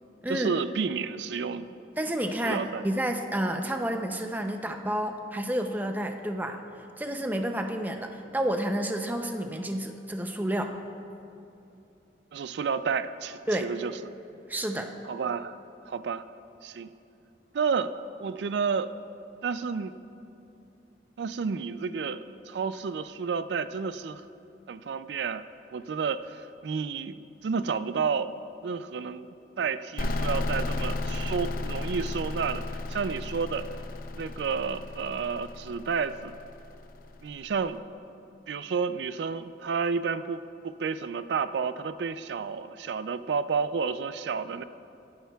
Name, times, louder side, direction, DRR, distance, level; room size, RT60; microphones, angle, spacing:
voice 1, 0.3-1.7 2.4-2.8 12.3-14.1 15.1-15.6 15.8-16.2 16.6-16.9 17.5-17.9 18.2-18.9 19.4-19.9 21.2-24.2 24.7-25.4 25.7-27.2 27.4-28.3 28.6-29.3 29.6-33.7 34.2-36.4 37.2-37.8 38.5-44.6, right 5 dB, 75° right, 12 dB, 0.4 m, -31 dB
voice 2, 2.0-10.7 13.5-13.7 14.5-14.9, right 1 dB, 10° right, 4 dB, 0.5 m, -30 dB
sound 1, 30.0-37.5, left 2 dB, 50° left, 0.5 m, -34 dB
26.0 x 10.0 x 2.3 m, 2.7 s
head